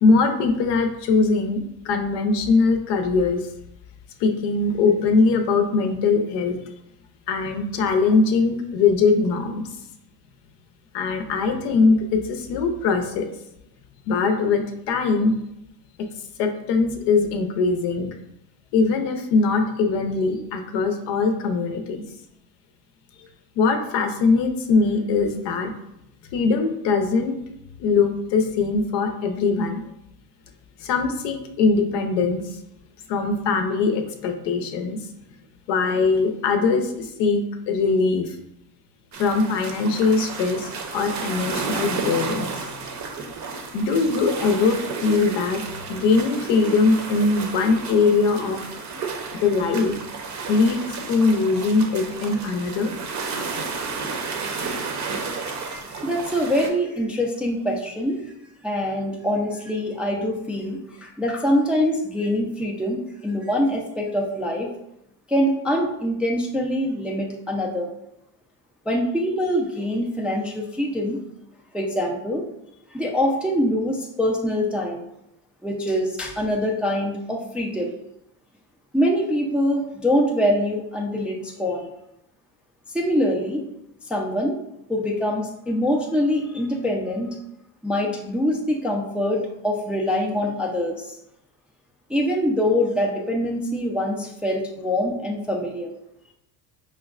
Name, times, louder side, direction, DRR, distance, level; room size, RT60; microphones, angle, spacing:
voice 1, 0.0-3.4 4.2-6.6 7.3-9.6 10.9-13.3 14.1-15.3 16.4-18.1 18.7-22.0 23.6-25.7 26.3-27.4 27.8-29.8 30.8-32.5 33.1-35.0 35.7-38.4 39.2-42.7 43.7-45.6 45.9-48.6 49.4-49.9 50.5-50.8 51.1-52.9, left 4 dB, 75° left, 6 dB, 0.7 m, -21 dB
sound 1, 39.1-56.7, right 4 dB, 40° right, 0.6 m, -32 dB
voice 2, 54.4-54.8 55.6-58.2 58.6-64.7 65.3-67.9 68.9-71.2 71.7-72.4 72.9-75.0 75.6-78.0 78.9-81.9 82.9-83.7 84.1-84.6 84.9-87.3 87.8-91.1 92.1-95.9, equal, 5° right, -1 dB, 0.3 m, -24 dB
5.0 x 2.2 x 2.4 m, 0.82 s
supercardioid pair, 90°, 44 cm